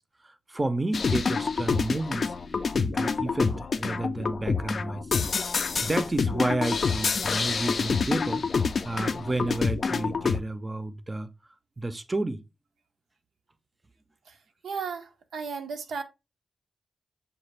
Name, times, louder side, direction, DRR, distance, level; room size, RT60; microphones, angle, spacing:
voice 1, 0.5-2.3 2.7-5.0 5.8-8.4 8.8-11.3 11.8-12.4, right 2 dB, 25° right, 0.5 m, -31 dB
sound 1, 0.9-10.4, left 5 dB, 60° left, 0.3 m, -27 dB
voice 2, 14.6-16.0, right 5 dB, 85° right, 0.5 m, -34 dB
5.7 x 2.3 x 3.2 m
cardioid pair, 65°, 0 cm